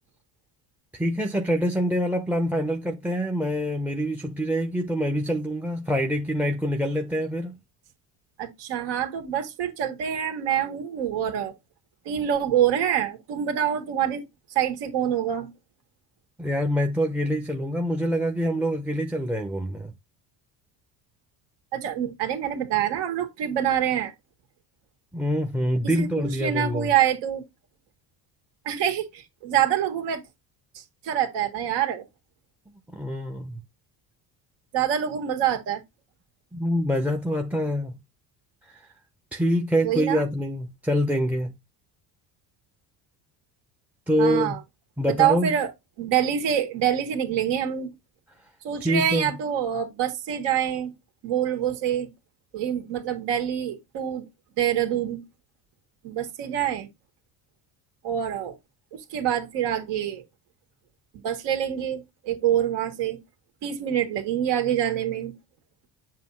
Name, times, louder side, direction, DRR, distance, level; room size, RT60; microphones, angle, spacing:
voice 1, 0.9-7.6 16.4-19.9 25.1-26.9 32.9-33.6 36.5-38.0 38.7-38.8 39.3-41.5 44.1-44.5 45.0-45.5 48.8-49.3, equal, 5° right, 0.7 m, -25 dB
voice 2, 8.4-11.5 12.1-14.2 14.6-15.5 21.7-24.1 25.8-27.4 28.7-30.2 30.8-32.0 34.7-35.8 39.8-40.3 44.2-44.6 45.2-45.7 46.0-47.9 48.6-50.9 51.2-52.1 52.5-54.3 54.6-55.2 56.0-56.9 58.0-58.6 58.9-60.2 61.2-63.2 63.6-65.3, right 10 dB, 75° right, 2.0 m, -26 dB
7.6 x 2.8 x 5.5 m
cardioid pair, 110°, 43 cm